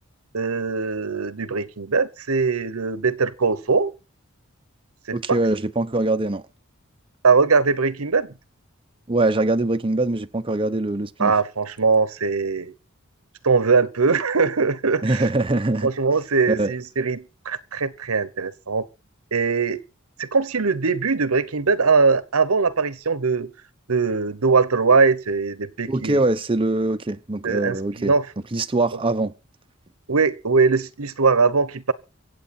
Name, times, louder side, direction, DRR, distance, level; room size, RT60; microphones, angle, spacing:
voice 1, 0.3-3.9 5.1-5.2 7.2-8.3 11.2-12.7 13.4-15.3 15.8-18.9 19.3-19.8 20.2-23.5 23.9-26.2 27.4-28.3 30.1-31.9, right 4 dB, 90° right, 1.0 m, -21 dB
voice 2, 5.1-6.4 9.1-11.3 15.0-15.9 16.5-16.7 25.9-28.1 28.5-29.3, right 2 dB, 25° right, 0.7 m, -23 dB
24.5 x 8.2 x 4.3 m
head